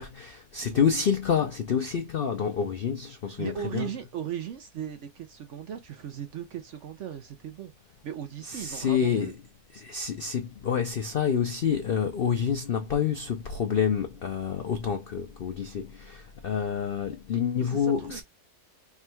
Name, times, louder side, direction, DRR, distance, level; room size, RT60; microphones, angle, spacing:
voice 1, 0.0-3.9 8.4-9.3 9.7-18.2, left 7 dB, 85° left, 0.4 m, -28 dB
voice 2, 3.4-7.7 8.0-9.3 17.6-18.2, right 9 dB, 65° right, 0.7 m, -37 dB
3.5 x 2.2 x 4.3 m
omnidirectional pair, 1.7 m